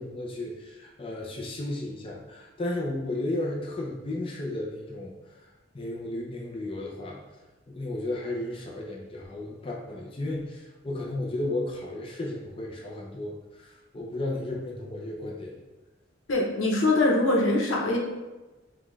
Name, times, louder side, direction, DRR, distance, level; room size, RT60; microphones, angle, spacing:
voice 1, 0.0-5.5 5.7-7.2 7.7-15.5, left 1 dB, 30° left, -2 dB, 0.6 m, -34 dB
voice 2, 16.3-18.0, left 2 dB, 85° left, -1 dB, 0.9 m, -23 dB
5.7 x 2.4 x 3.2 m, 1.1 s
head